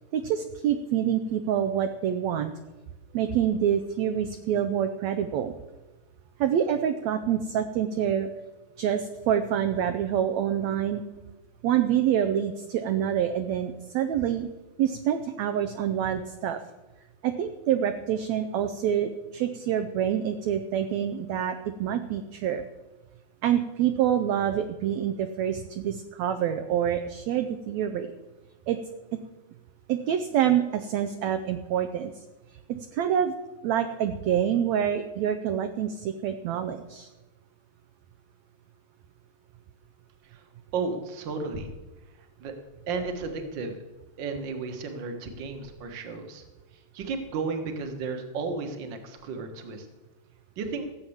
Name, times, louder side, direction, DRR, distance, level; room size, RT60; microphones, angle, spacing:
voice 1, 0.1-2.5 3.1-5.5 6.4-8.3 8.8-11.0 11.6-14.5 14.8-16.6 17.2-22.6 23.4-28.1 28.7-28.8 29.1-29.2 29.9-32.1 32.7-33.4 33.6-37.1, right 9 dB, 75° right, 8 dB, 1.7 m, -26 dB
voice 2, 40.7-41.7 42.4-42.5 42.9-43.8 44.2-46.4 46.9-49.9 50.6-50.8, right 4 dB, 50° right, 5 dB, 1.6 m, -33 dB
16.0 x 7.6 x 7.2 m, 1.1 s
omnidirectional pair, 3.8 m